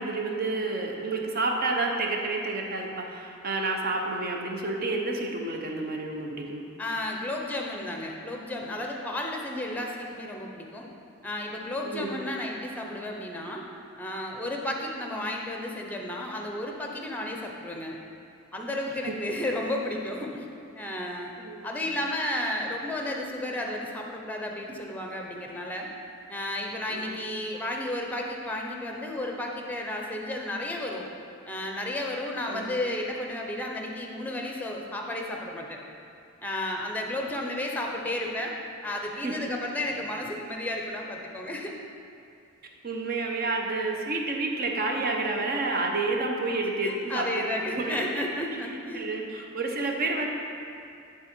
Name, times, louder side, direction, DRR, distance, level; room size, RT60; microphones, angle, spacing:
voice 1, 0.0-6.6 11.8-12.2 21.4-21.7 26.9-27.0 32.5-32.7 39.2-39.3 42.8-47.4 47.7-48.1 48.9-50.3, right 3 dB, 45° right, 1 dB, 0.8 m, -29 dB
voice 2, 6.8-10.9 11.2-13.6 14.0-18.0 18.5-20.4 20.8-21.3 21.6-25.9 26.3-31.1 31.5-35.8 36.4-38.5 38.8-41.7 46.8-49.1, left 1 dB, 10° left, 0 dB, 0.7 m, -33 dB
11.0 x 3.8 x 4.4 m, 2.5 s
head